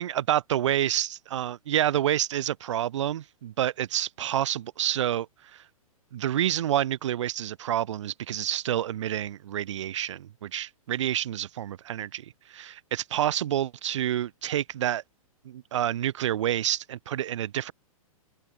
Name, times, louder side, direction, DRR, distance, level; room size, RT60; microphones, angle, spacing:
voice 1, 0.0-5.3 5.5-5.6 6.1-15.0 15.4-17.7, right 11 dB, 55° right, 0.5 m, -28 dB
open air
figure-of-eight pair, 110°, 19 cm